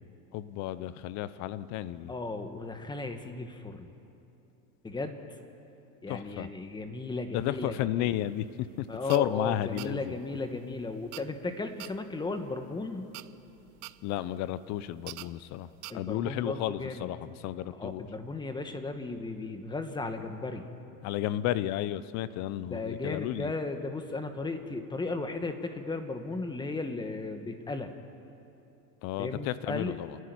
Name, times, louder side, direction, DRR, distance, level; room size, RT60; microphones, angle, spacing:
voice 1, 0.3-2.1 6.1-6.5 7.3-10.2 14.0-15.7 15.9-18.1 21.0-23.5 29.0-30.2, left 13 dB, 40° left, 16 dB, 0.8 m, -32 dB
voice 2, 2.1-3.9 4.8-5.2 6.0-8.1 8.9-13.1 15.9-17.1 17.7-20.7 22.6-27.9 29.2-30.0, left 3 dB, 10° left, 7 dB, 1.4 m, -35 dB
sound 1, 8.1-15.9, right 20 dB, 45° right, 0.6 m, -48 dB
28.5 x 11.5 x 9.7 m, 2.8 s
supercardioid pair, 130°, 43 cm